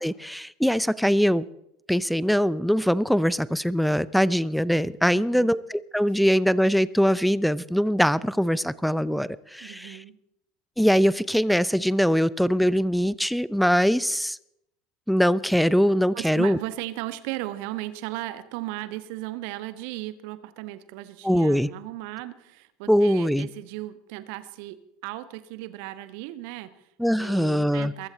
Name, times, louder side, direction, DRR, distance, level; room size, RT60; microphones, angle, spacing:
voice 1, 0.0-1.5 1.9-10.0 10.8-14.4 15.1-16.6 21.2-21.7 22.9-23.5 27.0-27.9, equal, ahead, 21 dB, 0.6 m, -22 dB
voice 2, 5.1-5.5 9.6-10.2 16.1-28.1, right 16 dB, 55° right, 13 dB, 1.3 m, -36 dB
22.5 x 15.0 x 4.2 m, 0.80 s
figure-of-eight pair, 75°, 0 cm